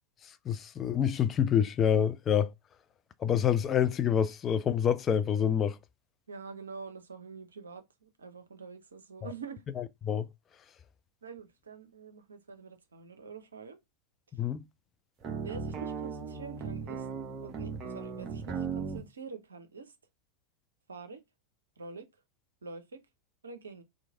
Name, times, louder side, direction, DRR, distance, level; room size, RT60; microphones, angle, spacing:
voice 1, 0.5-2.5 3.2-5.8 10.0-10.3 14.4-14.7, left 8 dB, 25° left, 0.3 m, -27 dB
voice 2, 6.3-9.6 11.2-13.8 14.3-14.4 15.3-17.1 17.4-19.9 20.9-21.2 21.8-22.1 22.6-23.0 23.4-23.8, right 5 dB, 70° right, 0.6 m, -46 dB
sound 1, 15.2-19.0, right 5 dB, 30° right, 0.8 m, -37 dB
3.1 x 2.5 x 3.5 m
figure-of-eight pair, 90°, 0 cm